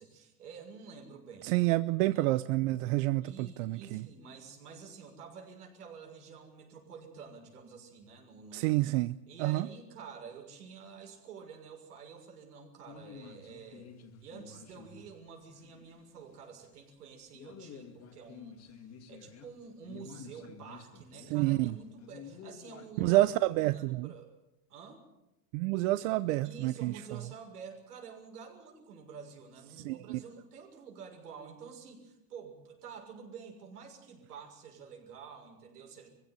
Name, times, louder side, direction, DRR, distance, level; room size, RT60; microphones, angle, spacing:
voice 1, 0.0-1.6 2.0-2.3 3.2-8.7 9.3-13.9 14.2-18.8 19.1-23.2 23.6-24.3 24.7-25.0 26.4-36.1, right 6 dB, 85° right, 6.6 m, -49 dB
voice 2, 1.4-4.0 8.5-9.7 21.3-21.8 23.0-24.1 25.5-26.9 29.8-30.2, right 18 dB, 60° right, 0.8 m, -28 dB
sound 1, 12.9-16.3 16.6-16.7 17.3-23.3, left 6 dB, 35° left, 2.3 m, -51 dB
22.0 x 16.0 x 9.4 m
hypercardioid pair, 115°, 45 cm